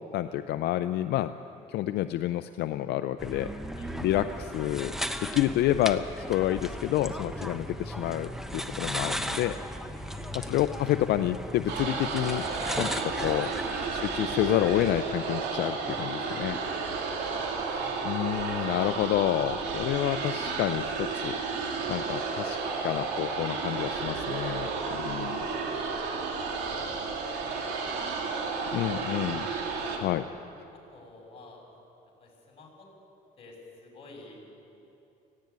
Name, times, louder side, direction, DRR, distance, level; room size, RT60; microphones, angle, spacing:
voice 1, 0.0-1.4 1.7-3.5 4.0-4.9 5.2-9.5 10.3-12.4 12.8-13.5 13.9-16.6 18.0-21.6 21.9-22.6 22.8-25.5 28.7-29.5 30.0-30.2, left 13 dB, 75° left, 10 dB, 0.5 m, -29 dB
sound 1, 3.2-15.0, equal, ahead, 1.0 m, -36 dB
voice 2, 10.0-10.5 12.6-12.7 16.6-16.7 17.0-18.1 19.3-19.4 25.5-26.1 26.6-26.9 27.4-29.2 29.9-30.2 30.7-31.6 32.2-32.9 33.4-34.4, left 3 dB, 35° left, -1 dB, 6.4 m, -52 dB
sound 2, 11.7-30.0, right 4 dB, 90° right, 2.5 m, -32 dB
18.0 x 15.5 x 9.4 m, 2.8 s
cardioid pair, 110°, 17 cm